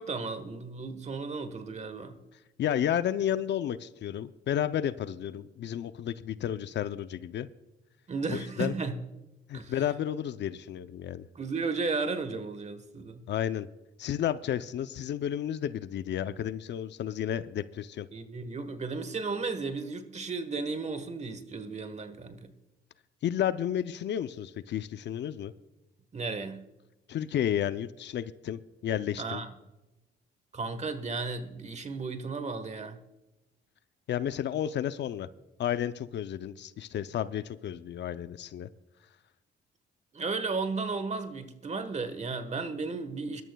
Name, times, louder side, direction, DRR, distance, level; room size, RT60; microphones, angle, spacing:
voice 1, 0.0-2.2 8.1-9.0 9.5-9.7 11.3-13.2 18.1-22.5 26.1-26.6 29.2-29.5 30.5-33.0 40.1-43.4, right 4 dB, 35° right, 10 dB, 1.3 m, -34 dB
voice 2, 2.6-7.5 8.3-8.7 9.5-11.3 13.3-13.7 14.0-18.1 23.2-25.5 27.1-29.4 34.1-35.3 35.6-38.7, left 10 dB, 60° left, 13 dB, 0.6 m, -32 dB
24.0 x 12.5 x 2.3 m, 1.0 s
cardioid pair, 90°, 20 cm